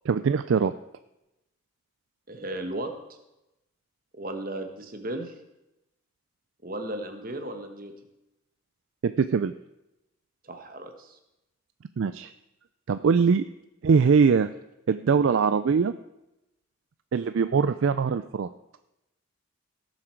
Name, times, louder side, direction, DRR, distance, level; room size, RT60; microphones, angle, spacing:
voice 1, 0.1-0.7 9.0-9.5 12.0-12.3 12.9-13.4 13.8-14.5 14.9-15.9 17.1-18.5, right 5 dB, 60° right, 12 dB, 0.3 m, -22 dB
voice 2, 2.3-2.9 4.1-5.3 6.6-7.9 10.4-11.2, right 1 dB, 40° right, 6 dB, 1.3 m, -35 dB
18.0 x 7.3 x 4.5 m, 0.94 s
head